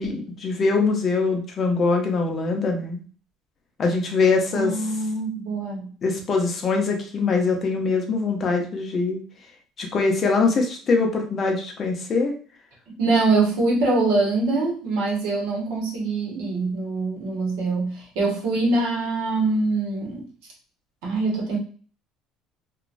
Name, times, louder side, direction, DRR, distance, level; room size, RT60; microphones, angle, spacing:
voice 1, 0.0-3.0 3.8-4.7 6.0-9.2 9.8-12.3, left 4 dB, 35° left, 2 dB, 0.6 m, -23 dB
voice 2, 4.5-5.9 12.9-20.2 21.0-21.6, right 3 dB, 85° right, -2 dB, 1.1 m, -24 dB
3.0 x 2.2 x 2.5 m, 0.41 s
cardioid pair, 145°, 0 cm